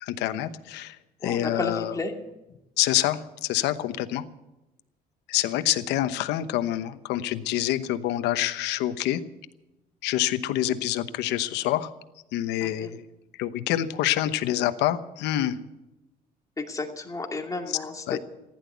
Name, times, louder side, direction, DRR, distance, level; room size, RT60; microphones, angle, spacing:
voice 1, 0.0-1.0 1.2-1.9 2.8-4.2 5.3-9.2 10.0-11.9 12.3-13.0 13.4-15.6 18.1-18.2, left 13 dB, 90° left, 11 dB, 1.0 m, -26 dB
voice 2, 1.2-2.1 12.6-12.9 16.6-18.2, left 3 dB, 20° left, 3 dB, 2.6 m, -32 dB
15.5 x 11.5 x 8.3 m, 0.98 s
cardioid pair, 110°, 17 cm